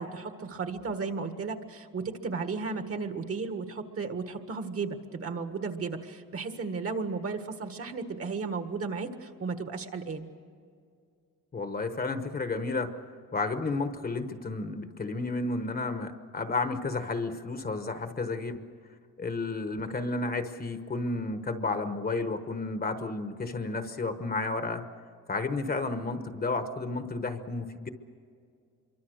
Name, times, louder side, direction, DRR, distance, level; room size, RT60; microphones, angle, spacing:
voice 1, 0.0-10.3, right 4 dB, 45° right, 7 dB, 1.7 m, -34 dB
voice 2, 11.5-12.9 13.3-18.6 19.2-24.8 25.3-27.9, left 3 dB, 30° left, 8 dB, 1.1 m, -32 dB
26.5 x 23.5 x 6.4 m, 2.2 s
wide cardioid pair, 170°, 32 cm